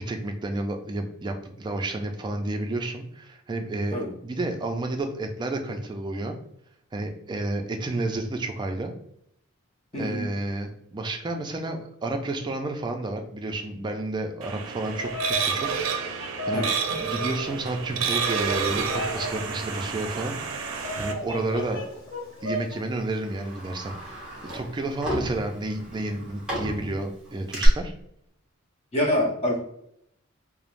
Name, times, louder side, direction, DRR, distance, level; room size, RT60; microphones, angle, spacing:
voice 1, 0.0-6.4 6.9-8.9 9.9-15.7 15.9-16.7 17.0-21.9 22.4-27.9, right 2 dB, 20° right, 5 dB, 0.3 m, -31 dB
voice 2, 9.9-10.3 16.5-16.7 28.9-29.6, left 1 dB, 30° left, 0 dB, 0.6 m, -25 dB
sound 1, 14.4-21.1, right 6 dB, 90° right, 0.4 m, -30 dB
Bird vocalization bird call bird song, 14.8-22.8, equal, 65° left, 1.0 m, -36 dB
Sliding door, 17.7-20.9 21.2-21.3 22.3-22.5 22.9-27.7, equal, 5° right, 1.3 m, -36 dB
3.1 x 2.0 x 2.4 m, 0.74 s
head